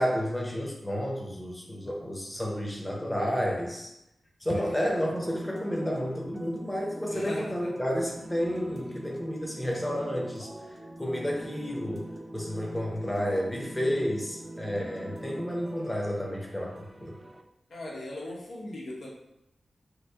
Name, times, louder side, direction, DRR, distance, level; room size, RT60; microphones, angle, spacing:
voice 1, 0.0-3.9 4.4-10.5 11.0-17.2, equal, 15° left, -2 dB, 0.7 m, -31 dB
sound 1, 4.8-17.4, right 1 dB, 25° right, 0.3 m, -43 dB
voice 2, 7.1-7.8 17.7-19.1, left 1 dB, 90° left, -4 dB, 0.8 m, -39 dB
3.0 x 2.4 x 3.3 m, 0.85 s
wide cardioid pair, 105°, 0 cm